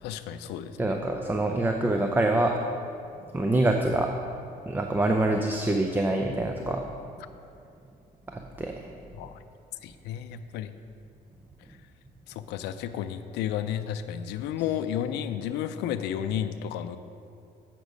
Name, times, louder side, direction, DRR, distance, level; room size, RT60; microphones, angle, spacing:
voice 1, 0.0-1.0 9.2-9.4 9.8-10.7 12.5-17.0, left 10 dB, 85° left, 10 dB, 0.4 m, -32 dB
voice 2, 0.8-2.6 3.3-4.1 4.7-6.8 8.3-8.9, right 2 dB, 10° right, 3 dB, 0.5 m, -25 dB
8.0 x 5.9 x 5.2 m, 2.5 s
cardioid pair, 110°, 17 cm